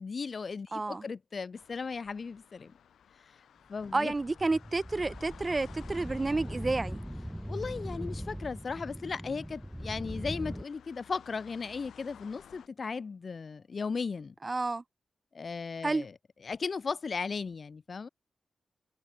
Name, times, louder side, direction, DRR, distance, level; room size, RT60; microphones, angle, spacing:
voice 1, 0.0-2.7 3.7-4.1 7.5-14.3 15.3-16.1 16.4-18.1, left 5 dB, 60° left, 0.7 m, -36 dB
voice 2, 0.7-1.0 3.9-7.0 14.4-14.8 15.8-16.1, right 3 dB, 35° right, 0.9 m, -30 dB
sound 1, 1.5-12.7, left 9 dB, 85° left, 2.5 m, -56 dB
sound 2, 3.8-10.6, equal, ahead, 1.1 m, -40 dB
cardioid pair, 50°, 0 cm